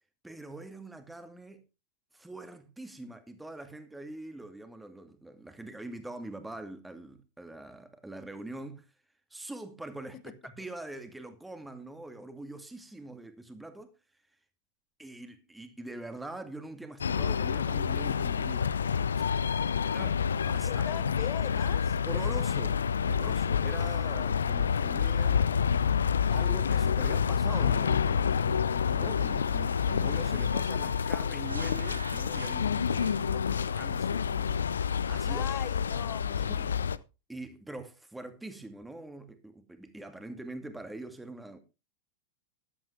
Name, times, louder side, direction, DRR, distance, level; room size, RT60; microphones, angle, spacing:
voice 1, 0.2-1.6 2.1-8.8 9.3-13.9 15.0-19.3 19.6-21.2 22.1-25.6 26.3-34.8 35.1-35.5 36.4-36.7 37.3-41.6, right 2 dB, 5° right, 2.2 m, -44 dB
sound 1, 17.0-37.0, left 7 dB, 70° left, 0.6 m, -28 dB
voice 2, 20.5-22.0 35.3-37.0, left 14 dB, 35° left, 0.8 m, -41 dB
sound 2, 28.9-33.5, right 4 dB, 75° right, 0.7 m, -47 dB
14.0 x 12.0 x 3.4 m
figure-of-eight pair, 90°, 0 cm